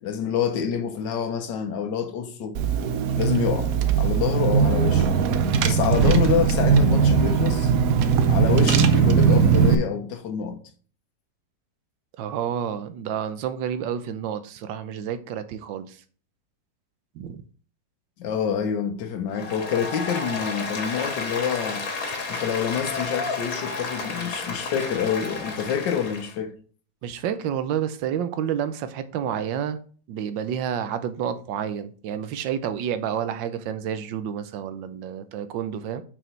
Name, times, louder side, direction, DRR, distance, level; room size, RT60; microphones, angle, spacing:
voice 1, 0.0-2.6 3.1-5.2 5.6-7.7 8.3-10.6 18.2-21.9 22.3-26.5, left 7 dB, 80° left, 1.6 m, -27 dB
Car / Engine, 2.5-9.7, right 6 dB, 65° right, 1.0 m, -19 dB
voice 2, 12.2-16.0 17.1-17.4 27.0-29.8 30.1-36.0, right 9 dB, 90° right, 1.4 m, -29 dB
Applause, 19.3-26.3, left 4 dB, 55° left, 1.8 m, -31 dB
6.2 x 5.0 x 4.5 m
omnidirectional pair, 1.9 m